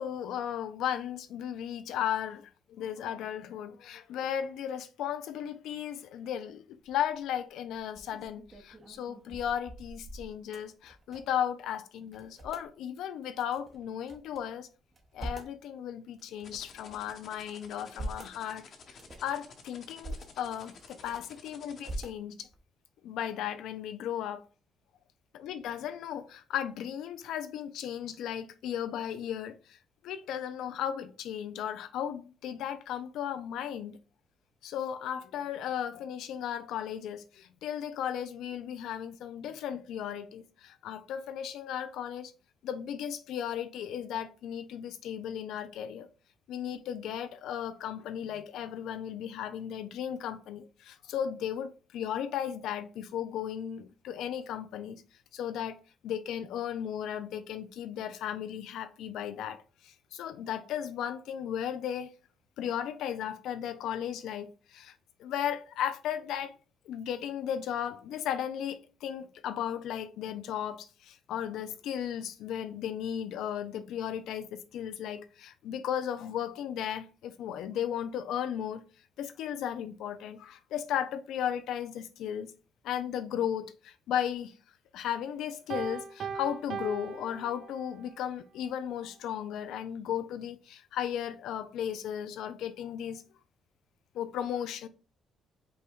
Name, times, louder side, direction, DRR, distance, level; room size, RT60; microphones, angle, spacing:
voice 1, 0.0-14.7 15.1-18.6 19.2-22.5 23.0-24.4 25.3-29.8 30.0-34.0 34.6-42.3 42.6-46.1 46.5-55.0 55.3-62.1 62.6-64.9 65.2-66.5 66.9-78.8 79.2-82.5 82.8-84.6 84.9-93.2 94.1-94.9, left 9 dB, 85° left, 0.4 m, -35 dB
sound 1, 6.8-7.2 7.7-11.5 11.7-11.8 12.1-12.7 13.4-14.4 14.8-15.6 16.2-17.1 17.6-18.4 18.9-19.3 19.8-20.3 20.7-21.4 21.8-22.6, right 1 dB, 30° right, 1.1 m, -43 dB
sound 2, 16.4-22.0, left 6 dB, 60° left, 1.1 m, -52 dB
Piano, 85.7-88.1, right 6 dB, 60° right, 0.5 m, -39 dB
5.2 x 2.3 x 4.5 m
cardioid pair, 90°, 0 cm